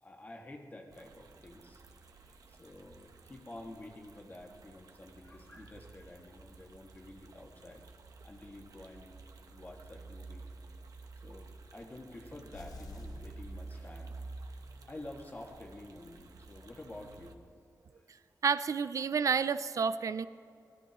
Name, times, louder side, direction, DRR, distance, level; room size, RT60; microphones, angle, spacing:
voice 1, 0.0-7.8 8.2-9.2 9.5-10.5 11.2-14.2 14.9-17.4, left 1 dB, 30° left, 0 dB, 2.0 m, -49 dB
sound 1, 0.9-17.3, right 3 dB, 85° right, 1.1 m, -51 dB
sound 2, 12.5-14.4, left 4 dB, 90° left, 1.2 m, -50 dB
voice 2, 18.4-20.3, right 6 dB, 65° right, 15 dB, 0.4 m, -30 dB
24.5 x 19.5 x 3.1 m, 2.5 s
wide cardioid pair, 135°, 6 cm